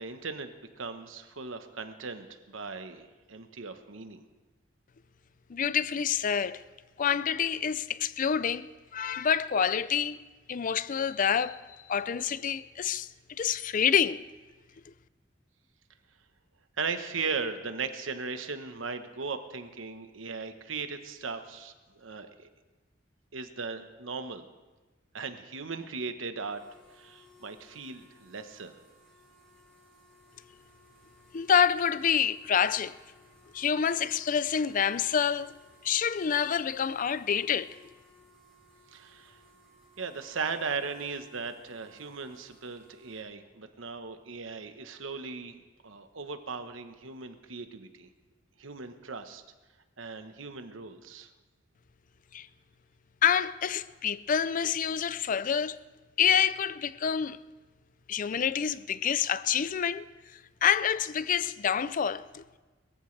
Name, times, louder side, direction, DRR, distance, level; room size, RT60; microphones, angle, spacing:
voice 1, 0.0-4.2 16.8-22.5 23.3-24.5 25.1-26.6 26.9-28.7 38.9-39.4 40.0-48.1 48.6-49.4 50.0-51.3, right 4 dB, 90° right, 1.1 m, -38 dB
voice 2, 5.5-6.6 7.0-8.7 8.9-10.2 10.5-11.6 11.9-13.1 13.4-14.2 31.3-32.9 33.5-35.6 35.8-37.7 52.3-52.5 53.2-55.8 56.2-57.4 58.1-60.1 60.6-62.4, left 8 dB, 45° left, 0.4 m, -27 dB
sound 1, 26.4-43.2, equal, ahead, 5.0 m, -60 dB
22.0 x 14.5 x 3.3 m
head